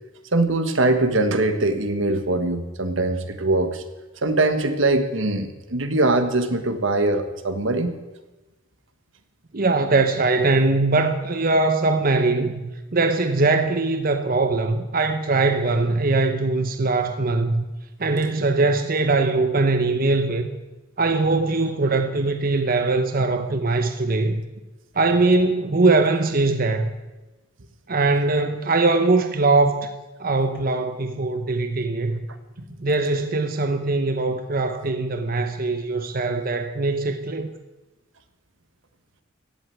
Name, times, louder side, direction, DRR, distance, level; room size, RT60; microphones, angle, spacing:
voice 1, 0.3-3.8 4.2-8.0, right 2 dB, 70° right, 1.4 m, -22 dB
voice 2, 9.5-12.6 12.9-17.6 18.0-20.5 21.0-24.4 24.9-26.9 27.9-29.9 30.2-32.2 32.8-37.5, right 3 dB, 45° right, 0.9 m, -21 dB
16.0 x 7.9 x 9.6 m
head